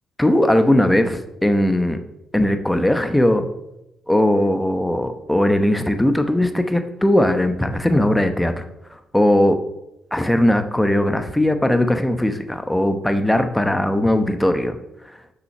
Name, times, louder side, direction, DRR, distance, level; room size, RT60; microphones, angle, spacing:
voice 1, 0.2-2.0 2.3-3.5 4.1-8.6 9.1-9.6 10.1-14.8, left 1 dB, 5° left, 7 dB, 0.9 m, -19 dB
6.3 x 6.1 x 5.4 m, 0.89 s
cardioid pair, 90°, 0 cm